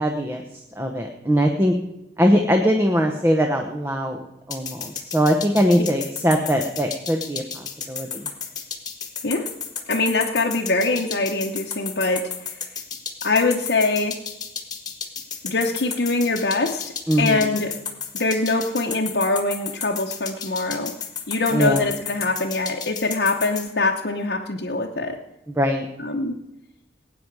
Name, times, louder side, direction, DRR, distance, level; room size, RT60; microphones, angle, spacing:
voice 1, 0.0-1.7 2.2-8.3 17.1-17.5 21.5-21.9 25.5-25.9, equal, 15° right, 4 dB, 0.9 m, -21 dB
sound 1, 4.5-23.7, left 7 dB, 25° left, 1.5 m, -32 dB
voice 2, 9.9-12.3 13.2-14.2 15.4-16.8 17.2-17.7 18.1-20.9 21.3-25.2 26.0-26.4, left 3 dB, 70° left, 0 dB, 0.9 m, -23 dB
18.5 x 9.1 x 4.8 m, 0.93 s
head